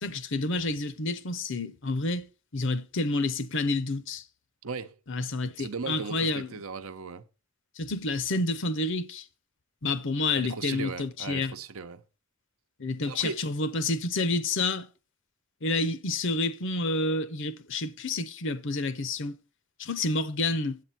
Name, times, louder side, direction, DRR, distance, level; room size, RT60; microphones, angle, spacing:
voice 1, 0.0-2.2 2.5-4.2 5.1-6.5 7.8-9.2 9.8-11.5 12.8-14.9 15.6-19.4 19.8-20.8, left 2 dB, 60° left, 0.8 m, -29 dB
voice 2, 4.6-4.9 5.6-7.2 10.3-12.0 13.1-13.4, right 4 dB, 85° right, 0.8 m, -37 dB
8.5 x 8.2 x 4.4 m
head